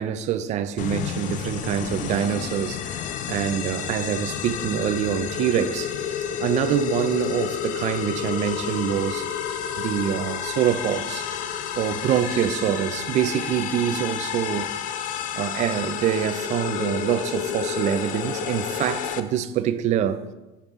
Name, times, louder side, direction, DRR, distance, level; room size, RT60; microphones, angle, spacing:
voice 1, 0.0-9.3 9.8-11.3 11.8-14.7 15.4-20.2, right 9 dB, 35° right, 0.4 m, -25 dB
sound 1, 0.8-19.2, left 9 dB, 40° left, 0.5 m, -30 dB
9.7 x 7.0 x 3.6 m
cardioid pair, 170°, 21 cm